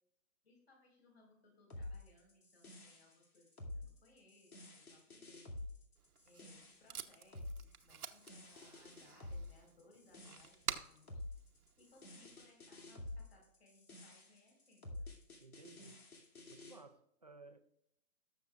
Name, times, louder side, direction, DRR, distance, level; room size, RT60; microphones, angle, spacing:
voice 1, 0.4-5.6 6.2-11.2 11.8-15.1, left 2 dB, 45° left, 4.5 m, -67 dB
sound 1, 1.7-16.8, left 2 dB, 85° left, 2.5 m, -50 dB
Packing tape duct tape, 6.0-12.4, right 8 dB, 85° right, 1.0 m, -49 dB
voice 2, 15.4-16.1 16.5-17.6, right 3 dB, 30° right, 0.5 m, -58 dB
18.0 x 7.0 x 2.4 m
hypercardioid pair, 165°, 43 cm